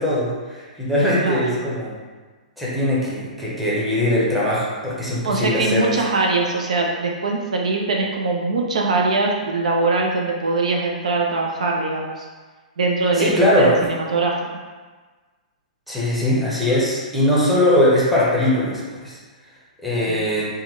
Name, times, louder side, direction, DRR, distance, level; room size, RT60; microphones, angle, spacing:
voice 1, 0.0-2.0 2.6-5.9 13.2-13.9 15.9-19.2 19.8-20.5, left 1 dB, ahead, -8 dB, 0.8 m, -20 dB
voice 2, 5.2-12.3 12.8-14.3 20.1-20.2, right 3 dB, 60° right, 0 dB, 0.4 m, -22 dB
3.4 x 2.2 x 3.1 m, 1.4 s
figure-of-eight pair, 110°, 4 cm